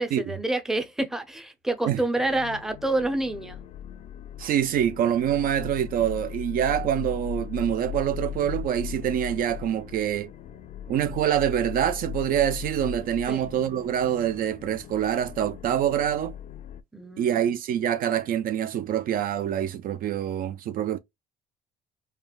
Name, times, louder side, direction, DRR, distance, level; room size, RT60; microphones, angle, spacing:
voice 1, 0.0-3.6 13.3-13.4 16.9-17.5, right 2 dB, 5° right, 0.6 m, -28 dB
sound 1, 2.1-16.8, left 9 dB, 40° left, 0.4 m, -38 dB
voice 2, 4.4-10.3 10.9-16.3 17.2-21.0, right 10 dB, 60° right, 0.4 m, -25 dB
3.2 x 2.2 x 2.3 m
cardioid pair, 110°, 17 cm